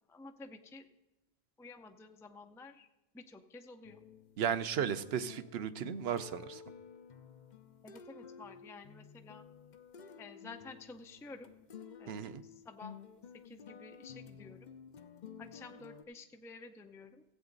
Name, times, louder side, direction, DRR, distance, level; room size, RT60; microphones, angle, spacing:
voice 1, 0.1-0.9 1.6-2.9 3.1-4.0 7.8-9.5 10.2-11.5 12.0-13.0 13.3-14.7 15.4-17.3, left 3 dB, 5° left, 6 dB, 0.3 m, -51 dB
sound 1, 3.8-16.0, left 7 dB, 50° left, 0.6 m, -52 dB
voice 2, 4.4-6.6 12.1-12.4, right 8 dB, 70° right, 12 dB, 0.8 m, -35 dB
16.0 x 8.2 x 3.9 m, 1.0 s
omnidirectional pair, 1.1 m